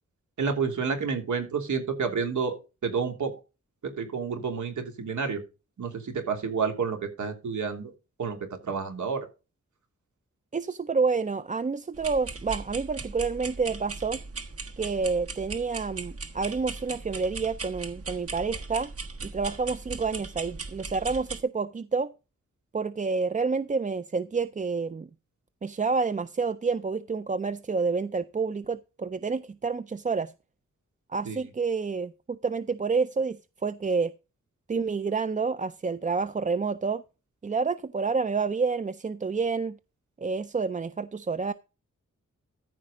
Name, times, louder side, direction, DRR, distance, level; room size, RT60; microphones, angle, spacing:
voice 1, 0.4-2.6 2.8-3.3 3.8-5.4 5.8-7.9 8.2-8.4 8.6-9.2 31.2-31.4, right 5 dB, 85° right, 3.1 m, -29 dB
voice 2, 10.5-14.2 14.8-18.9 19.2-22.1 22.7-25.1 25.6-30.3 31.1-34.1 34.7-37.0 37.4-39.8 40.2-41.5, right 4 dB, 25° right, 0.4 m, -29 dB
sound 1, 11.9-21.4, right 4 dB, 55° right, 1.5 m, -38 dB
14.0 x 4.8 x 5.1 m
wide cardioid pair, 155°, 29 cm